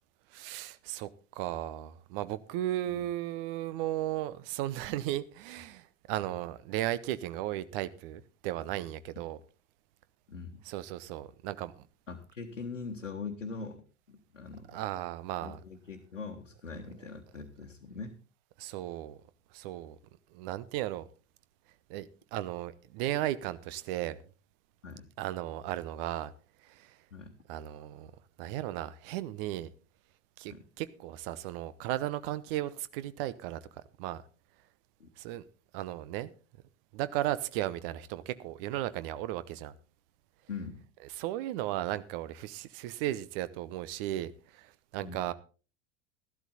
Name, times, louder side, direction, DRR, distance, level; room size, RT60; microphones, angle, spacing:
voice 1, 0.3-9.4 10.6-11.8 14.7-15.6 18.6-19.2 19.5-20.0 20.3-21.1 21.9-24.2 25.2-26.3 26.7-26.9 27.5-28.1 28.4-29.7 30.4-33.6 34.0-34.2 35.2-35.4 35.7-36.3 36.9-39.7 41.2-45.3, right 14 dB, 50° right, 16 dB, 0.9 m, -35 dB
voice 2, 10.3-10.6 12.1-14.7 15.4-18.1 24.8-25.1 27.1-27.3 30.5-30.6 35.0-35.1 40.5-40.8 45.0-45.3, left 4 dB, 85° left, 1 dB, 1.3 m, -42 dB
13.5 x 12.0 x 4.1 m, 0.36 s
figure-of-eight pair, 75°, 37 cm